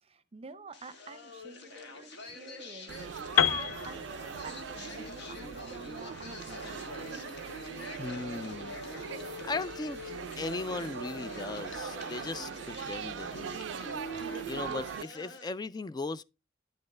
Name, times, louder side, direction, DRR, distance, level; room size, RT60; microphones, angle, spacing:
voice 1, 0.0-3.1 3.5-6.9, right 3 dB, 30° right, 0.6 m, -49 dB
sound 1, 0.7-15.5, left 1 dB, 60° left, 1.4 m, -44 dB
Laughter / Chatter / Crowd, 2.9-15.0, right 7 dB, 70° right, 0.4 m, -41 dB
Piano, 3.4-7.3, left 9 dB, 85° left, 0.5 m, -31 dB
voice 2, 8.0-8.7 9.4-13.7 14.4-16.2, left 3 dB, 20° left, 0.3 m, -37 dB
9.4 x 6.5 x 3.2 m
head